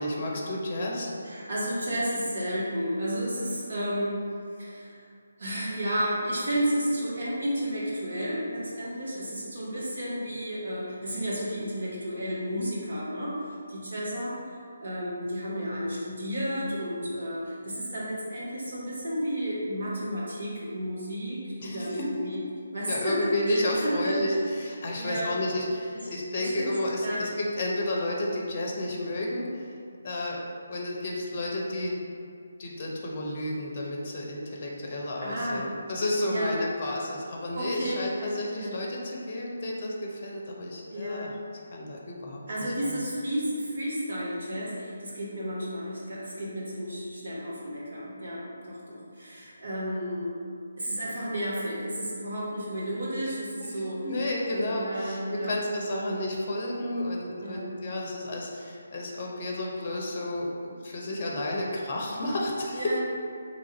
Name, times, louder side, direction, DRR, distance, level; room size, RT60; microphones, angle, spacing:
voice 1, 0.0-1.1 21.6-22.2 22.9-29.7 30.0-30.4 30.7-31.9 32.6-41.4 41.7-43.0 54.0-62.9, left 1 dB, 35° left, -2 dB, 0.6 m, -31 dB
voice 2, 1.2-4.2 4.6-5.0 5.4-13.4 13.7-14.4 14.8-22.4 22.7-24.4 25.0-25.4 26.3-26.7 27.0-27.3 35.2-35.7 36.2-36.6 37.5-38.8 40.9-41.3 42.5-50.4 50.8-54.1 54.5-55.6 55.8-56.1 57.4-57.7 62.7-63.0, equal, 60° right, -7 dB, 1.2 m, -32 dB
3.1 x 2.5 x 4.0 m, 2.3 s
figure-of-eight pair, 150°, 0 cm